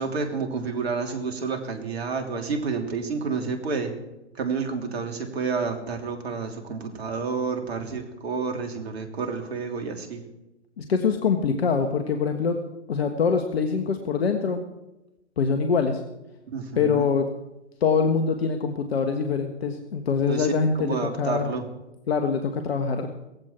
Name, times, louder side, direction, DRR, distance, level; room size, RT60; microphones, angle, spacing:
voice 1, 0.0-3.9 4.4-10.2 16.5-17.1 20.3-20.5 20.8-21.6, right 5 dB, 60° right, 5 dB, 3.2 m, -29 dB
voice 2, 10.8-12.6 12.9-14.6 15.4-16.0 16.7-17.3 17.8-21.5 22.1-23.1, left 5 dB, 60° left, 6 dB, 1.6 m, -24 dB
18.5 x 15.0 x 4.5 m, 0.99 s
figure-of-eight pair, 125°, 35 cm